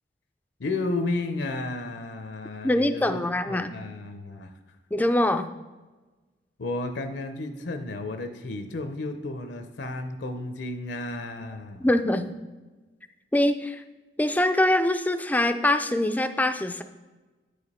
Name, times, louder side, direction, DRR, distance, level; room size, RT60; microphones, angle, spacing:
voice 1, 0.6-4.5 6.6-11.9, left 2 dB, 75° left, 7 dB, 0.6 m, -33 dB
voice 2, 2.6-3.7 4.9-5.5 11.8-12.3 13.3-13.8 14.2-16.8, left 1 dB, 10° left, 9 dB, 0.4 m, -23 dB
9.2 x 5.0 x 4.2 m, 1.2 s
head